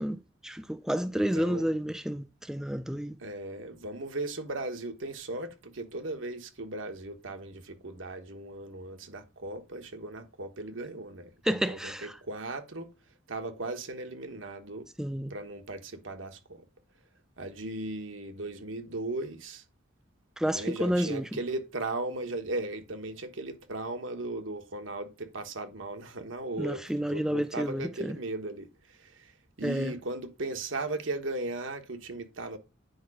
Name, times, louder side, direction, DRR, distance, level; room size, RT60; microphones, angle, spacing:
voice 1, 0.0-3.2 11.4-12.2 15.0-15.3 20.4-21.2 26.6-28.2 29.6-29.9, equal, 5° right, 0.4 m, -30 dB
voice 2, 1.1-1.7 3.2-12.9 13.3-14.9 15.3-16.7 17.4-19.6 20.5-29.3 29.6-32.6, right 2 dB, 80° right, 1.3 m, -37 dB
9.4 x 4.9 x 4.9 m
head